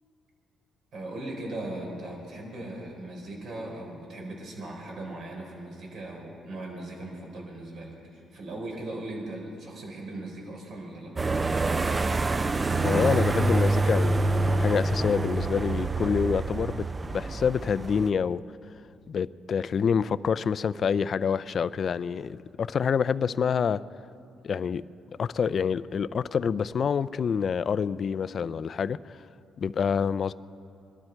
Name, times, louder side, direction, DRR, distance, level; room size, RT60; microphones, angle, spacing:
voice 1, 0.9-11.1, right 1 dB, 70° right, -1 dB, 4.0 m, -38 dB
sound 1, 11.2-18.1, right 2 dB, 25° right, 0.4 m, -26 dB
voice 2, 12.8-14.2 14.6-16.9 17.1-18.4 19.1-23.8 24.4-24.8 25.2-29.2 29.6-30.3, left 6 dB, 50° left, 16 dB, 0.4 m, -27 dB
22.5 x 12.5 x 4.5 m, 2.5 s
cardioid pair, 90°, 0 cm